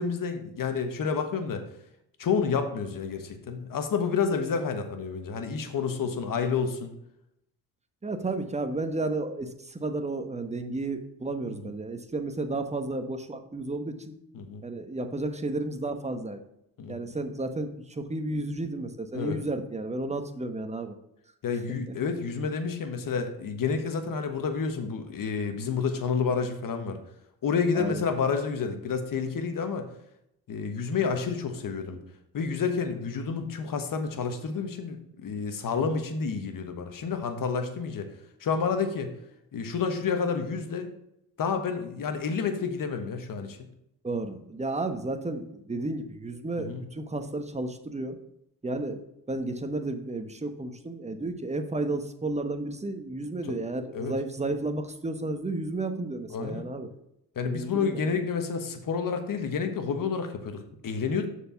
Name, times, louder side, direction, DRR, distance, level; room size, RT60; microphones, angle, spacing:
voice 1, 0.0-1.6 2.2-6.9 11.6-11.7 14.3-14.6 16.8-17.1 19.1-19.4 21.4-27.0 27.4-29.9 30.5-32.0 32.3-38.1 38.4-39.1 39.5-40.9 41.4-43.6 46.5-46.8 53.5-53.6 53.9-54.1 56.3-56.7 57.3-61.3, left 5 dB, 55° left, 7 dB, 1.4 m, -29 dB
voice 2, 8.0-14.2 14.6-16.4 16.9-20.9 21.9-22.0 27.7-28.0 44.0-48.2 48.6-49.0 49.3-56.9 57.4-58.1, right 2 dB, 15° right, 7 dB, 1.1 m, -32 dB
6.6 x 4.8 x 5.7 m, 0.80 s
cardioid pair, 70°, 39 cm